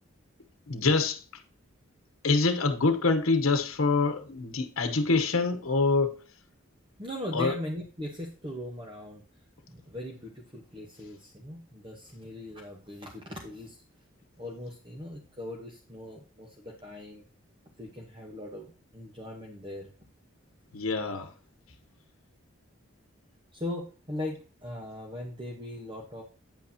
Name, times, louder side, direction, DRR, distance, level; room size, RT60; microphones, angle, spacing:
voice 1, 0.7-1.2 2.2-6.2 7.3-7.5 20.7-21.3, left 3 dB, 90° left, 1.0 m, -25 dB
voice 2, 7.0-9.2 9.7-13.8 14.4-17.2 17.8-19.9 23.5-26.2, left 1 dB, 25° right, 1.1 m, -39 dB
9.1 x 8.2 x 2.9 m
head